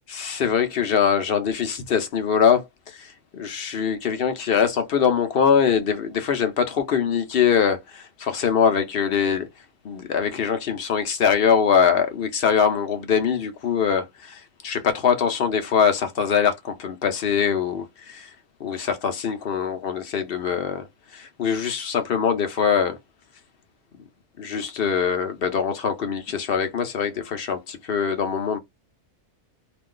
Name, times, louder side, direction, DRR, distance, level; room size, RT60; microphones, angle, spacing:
voice 1, 0.1-9.5 9.8-18.3 18.6-20.9 21.1-23.0 24.4-28.6, left 7 dB, 60° left, 0.6 m, -23 dB
2.5 x 2.3 x 3.7 m
omnidirectional pair, 1.6 m